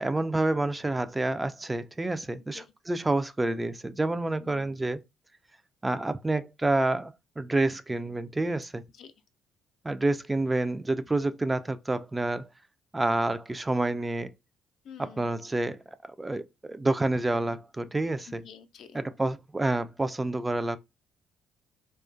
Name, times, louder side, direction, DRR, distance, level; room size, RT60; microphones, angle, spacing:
voice 1, 0.0-5.0 5.8-8.8 9.8-12.5 12.9-14.3 15.0-15.8 16.2-18.4 18.9-20.8, right 2 dB, 20° right, 0.3 m, -28 dB
voice 2, 4.4-4.8 8.9-9.1 14.8-15.3 18.4-19.0, left 7 dB, 60° left, 0.3 m, -49 dB
2.4 x 2.2 x 2.4 m
hypercardioid pair, 50°, 0 cm